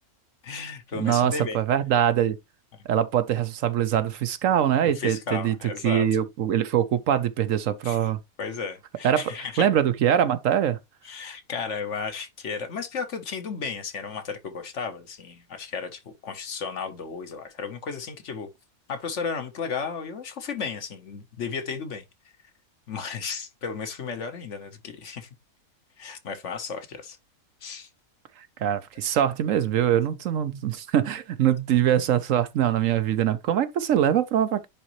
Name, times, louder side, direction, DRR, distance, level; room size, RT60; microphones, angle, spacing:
voice 1, 0.4-1.6 4.8-6.1 7.8-8.0 8.4-9.7 11.0-18.5 18.9-22.0 22.9-25.3 26.0-27.2 27.6-27.9, left 5 dB, 55° left, 1.3 m, -34 dB
voice 2, 1.0-2.4 2.9-5.5 5.8-8.2 9.0-10.8 28.4-34.7, right 10 dB, 70° right, 1.0 m, -23 dB
10.5 x 3.8 x 3.0 m
omnidirectional pair, 1.5 m